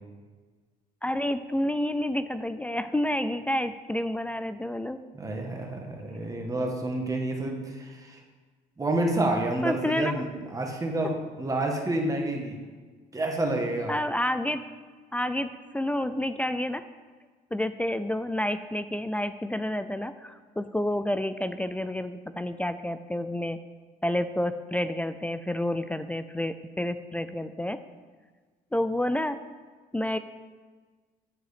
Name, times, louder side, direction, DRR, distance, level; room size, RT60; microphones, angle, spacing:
voice 1, 1.0-5.0 9.6-10.2 13.9-14.6 15.1-16.8 17.5-23.6 24.0-27.8 28.7-29.4 29.9-30.2, left 1 dB, 10° left, 11 dB, 0.4 m, -29 dB
voice 2, 5.1-8.2 8.8-12.6 13.1-13.9, right 1 dB, 20° right, 1 dB, 1.6 m, -29 dB
9.0 x 7.7 x 5.1 m, 1.4 s
cardioid pair, 110°, 17 cm